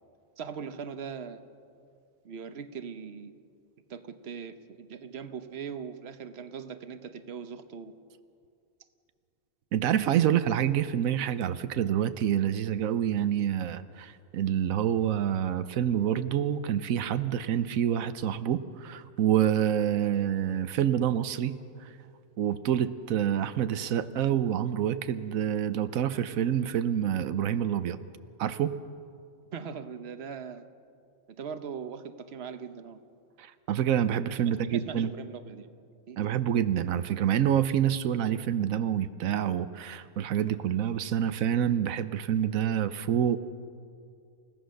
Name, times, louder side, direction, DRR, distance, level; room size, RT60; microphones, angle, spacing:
voice 1, 0.4-1.4 2.2-3.3 3.9-7.9 29.5-30.7 31.4-33.0 34.3-34.4 34.7-35.7 36.1-36.4, right 6 dB, 55° right, 9 dB, 1.2 m, -40 dB
voice 2, 9.7-21.9 22.4-28.0 28.4-28.8 33.4-35.1 36.2-43.4, right 9 dB, 90° right, 12 dB, 1.1 m, -27 dB
29.0 x 16.5 x 6.4 m, 2.3 s
omnidirectional pair, 1.4 m